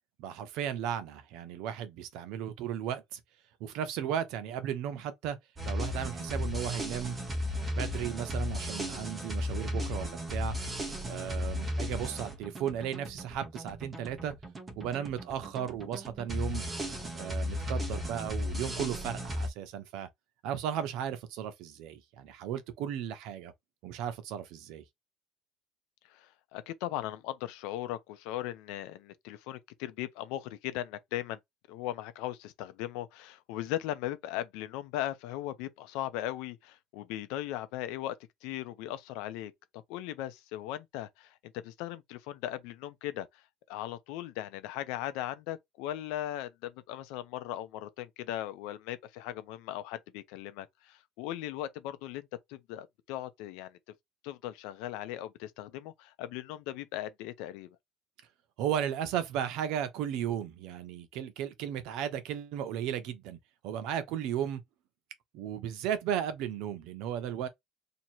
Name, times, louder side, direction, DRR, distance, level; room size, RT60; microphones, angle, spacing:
voice 1, 0.2-3.2 3.6-5.4 5.6-7.2 7.7-10.5 11.1-14.3 14.8-16.6 17.1-20.1 20.4-23.5 23.8-24.8 58.6-63.4 63.6-64.6 65.3-67.5, right 9 dB, 70° right, 0.8 m, -35 dB
sound 1, 5.6-19.5, left 1 dB, 15° right, 1.0 m, -35 dB
voice 2, 26.1-31.4 31.7-38.1 38.4-39.5 39.9-43.3 43.7-53.8 54.2-57.8, left 13 dB, 85° left, 0.7 m, -38 dB
3.0 x 2.7 x 4.4 m
cardioid pair, 165°, 0 cm